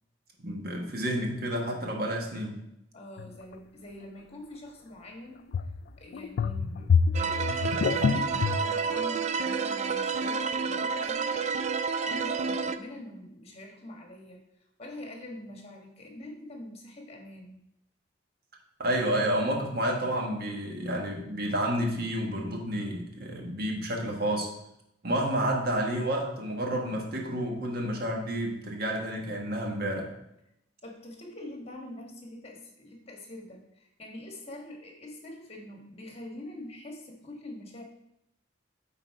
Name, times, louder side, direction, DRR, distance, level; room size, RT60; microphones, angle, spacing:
voice 1, 0.4-2.6 18.8-24.5 25.0-30.1, right 1 dB, 55° right, 0 dB, 1.4 m, -30 dB
voice 2, 2.9-5.5 6.0-11.6 12.1-14.4 14.8-17.6 30.8-37.8, left 1 dB, 35° left, 1 dB, 1.4 m, -44 dB
sound 1, 3.2-3.3 5.5-5.8 6.1-8.6, left 5 dB, 55° left, 0.3 m, -26 dB
sound 2, 7.1-12.8, right 5 dB, 35° right, 0.3 m, -29 dB
8.1 x 4.0 x 4.7 m, 0.83 s
head